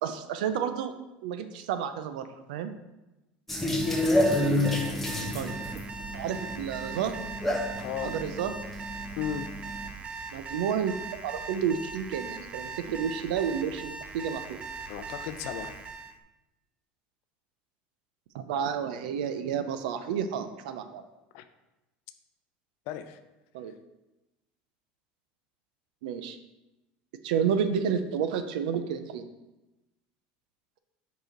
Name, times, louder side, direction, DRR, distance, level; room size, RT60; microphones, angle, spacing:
voice 1, 0.0-0.9 1.2-2.7 5.3-5.8 6.1-7.3 8.0-8.5 10.3-10.9 11.2-14.4 18.3-21.0 23.5-23.7 26.0-26.4 27.2-29.2, right 7 dB, 90° right, 9 dB, 0.5 m, -30 dB
sound 1, 3.5-9.9, left 1 dB, 5° left, 1.2 m, -29 dB
Alarm, 3.7-16.2, right 4 dB, 25° right, 0.5 m, -41 dB
voice 2, 4.5-5.0 7.8-8.2 9.2-9.5 14.9-15.7 21.3-21.4 22.9-23.2, left 10 dB, 65° left, 10 dB, 0.5 m, -36 dB
5.0 x 4.9 x 3.8 m, 1.0 s
supercardioid pair, 130°, 4 cm